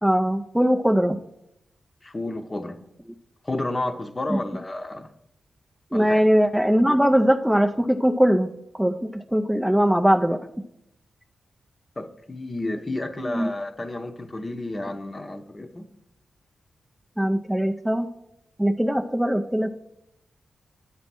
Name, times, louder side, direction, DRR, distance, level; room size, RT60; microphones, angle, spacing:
voice 1, 0.0-1.2 4.3-4.4 5.9-8.5 8.7-10.4 13.3-13.5 17.2-18.1 18.6-19.7, equal, 5° right, 4 dB, 0.5 m, -21 dB
voice 2, 2.0-2.8 3.4-5.0 5.9-6.2 12.0-15.8, left 2 dB, 30° left, 7 dB, 0.8 m, -31 dB
8.7 x 4.1 x 6.0 m, 0.80 s
cardioid pair, 70°, 0 cm